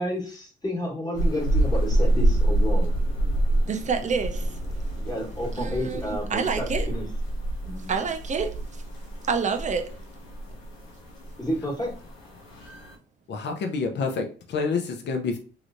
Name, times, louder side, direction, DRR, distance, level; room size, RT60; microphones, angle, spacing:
voice 1, 0.0-2.9 5.0-7.0 7.6-7.9 11.4-11.9, equal, 20° left, 1.3 m, -31 dB
sound 1, 1.1-12.9, right 1 dB, 90° left, 1.0 m, -27 dB
voice 2, 3.6-4.6 5.6-6.9 7.9-8.8 9.3-10.0, right 5 dB, 35° right, 0.6 m, -28 dB
voice 3, 13.3-15.4, left 4 dB, 60° left, 0.7 m, -28 dB
3.2 x 2.9 x 2.6 m
cardioid pair, 90°, 20 cm